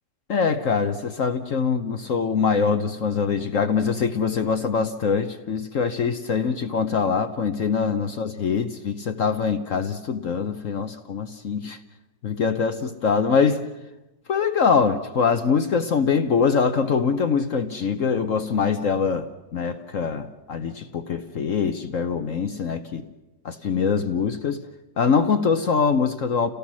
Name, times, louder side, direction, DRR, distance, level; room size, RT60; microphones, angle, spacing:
voice 1, 0.3-11.8 12.2-13.6 14.3-23.0 23.4-24.7 25.0-26.5, left 5 dB, 55° left, 8 dB, 1.1 m, -23 dB
29.5 x 17.5 x 6.2 m, 1.0 s
omnidirectional pair, 1.9 m